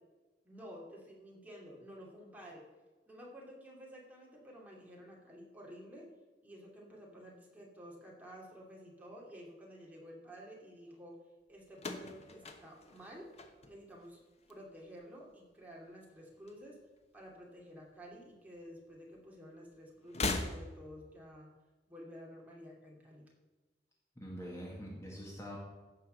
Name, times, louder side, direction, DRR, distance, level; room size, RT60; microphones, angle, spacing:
voice 1, 0.4-2.7 3.1-6.1 6.4-11.2 11.5-13.3 13.6-16.8 17.1-21.5 21.9-23.3, equal, 10° right, -3 dB, 2.7 m, -52 dB
sound 1, 11.7-14.1 14.4-15.0 16.0-17.1 17.3-17.4 18.6-18.7 20.0-21.1, left 3 dB, 35° left, 1.1 m, -40 dB
voice 2, 24.2-25.6, equal, 15° left, -3 dB, 1.9 m, -44 dB
15.5 x 5.7 x 6.8 m, 1.2 s
head